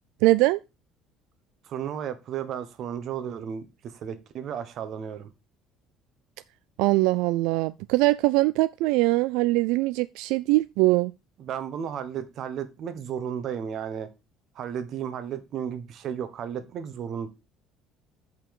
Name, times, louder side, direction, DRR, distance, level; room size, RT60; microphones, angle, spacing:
voice 1, 0.2-0.6 6.8-11.1, right 20 dB, 85° right, 0.3 m, -22 dB
voice 2, 1.6-5.3 11.4-14.1 14.5-17.3, right 8 dB, 45° right, 1.2 m, -34 dB
7.2 x 5.6 x 4.7 m
cardioid pair, 155°, 0 cm